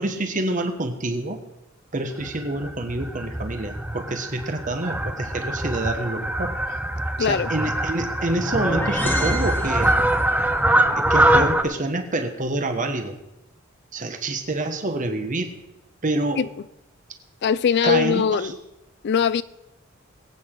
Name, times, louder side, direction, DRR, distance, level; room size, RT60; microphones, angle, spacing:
voice 1, 0.0-1.4 1.9-6.5 7.2-9.9 10.9-13.2 13.9-15.5 16.0-16.4 17.8-18.6, right 2 dB, 40° right, 1.3 m, -27 dB
Fowl, 2.2-11.6, right 1 dB, 5° right, 0.6 m, -23 dB
voice 2, 7.2-7.5 16.4-16.5 17.4-18.5 19.0-19.4, left 7 dB, 55° left, 0.4 m, -21 dB
sound 1, 8.1-10.4, left 1 dB, 10° left, 1.1 m, -28 dB
21.5 x 8.6 x 3.9 m
head